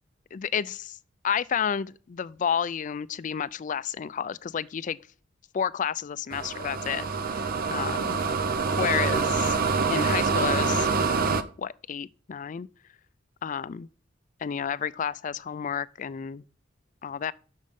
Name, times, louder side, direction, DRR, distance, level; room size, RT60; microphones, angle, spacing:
voice 1, 0.3-1.0 1.2-5.0 5.5-8.2 8.8-9.5 9.9-10.9 11.2-12.7 13.4-13.9 14.4-16.4 17.0-17.3, left 7 dB, 45° left, 0.4 m, -31 dB
sound 1, 6.3-11.4, right 4 dB, 55° right, 0.7 m, -26 dB
10.5 x 6.3 x 3.6 m
head